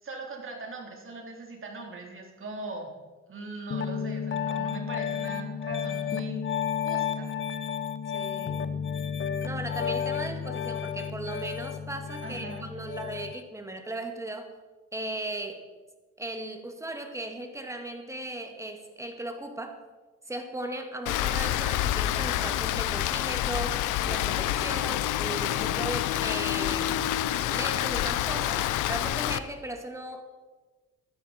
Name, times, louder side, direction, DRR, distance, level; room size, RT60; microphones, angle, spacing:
voice 1, 0.0-2.9 3.3-6.5 6.8-7.3 12.2-12.7 25.5-25.8, right 3 dB, 45° right, 1 dB, 3.6 m, -40 dB
Piano, 3.7-13.4, left 8 dB, 40° left, 0.8 m, -32 dB
voice 2, 8.1-8.7 9.4-14.5 14.9-15.6 16.2-19.8 20.3-27.1 27.5-30.2, right 1 dB, 10° right, 5 dB, 2.0 m, -37 dB
Rain, 21.1-29.4, left 13 dB, 90° left, 0.7 m, -28 dB
15.5 x 11.5 x 4.4 m, 1.3 s
cardioid pair, 90°, 30 cm